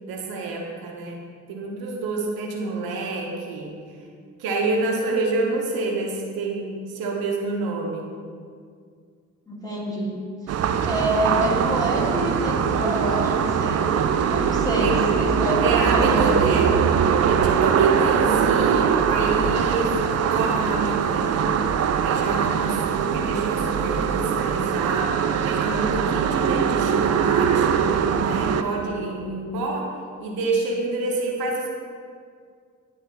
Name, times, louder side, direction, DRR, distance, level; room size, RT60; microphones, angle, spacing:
voice 1, 0.1-1.2 1.5-3.7 4.4-8.1 14.6-15.0 15.6-16.8 17.3-21.6 22.0-27.9 28.2-29.9 30.2-31.7, right 3 dB, 70° right, 0 dB, 1.1 m, -28 dB
voice 2, 9.5-10.2 10.5-10.6 10.8-13.9 14.3-16.5, equal, 10° left, -4 dB, 1.8 m, -27 dB
sound 1, 10.5-28.6, right 7 dB, 45° right, 0.5 m, -22 dB
9.3 x 3.2 x 4.4 m, 2.1 s
hypercardioid pair, 45°, 38 cm